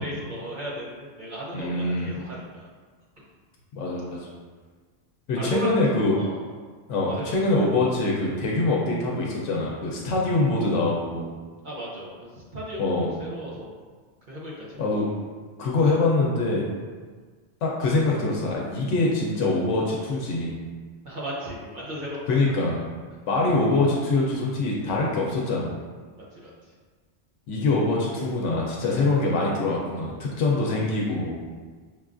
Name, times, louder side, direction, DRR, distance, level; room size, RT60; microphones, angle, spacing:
voice 1, 0.0-2.7 3.2-3.3 5.4-5.8 6.2-6.5 7.0-7.3 11.6-13.8 14.3-14.9 21.0-22.5 26.2-26.7, equal, 50° right, -6 dB, 0.7 m, -35 dB
voice 2, 1.5-2.1 3.7-4.2 5.3-6.2 6.9-11.3 12.8-13.1 14.8-15.1 15.6-16.7 17.6-20.6 22.3-22.8 23.3-25.8 27.5-31.5, left 2 dB, 80° left, -3 dB, 0.9 m, -24 dB
5.0 x 2.3 x 2.4 m, 1.5 s
omnidirectional pair, 1.2 m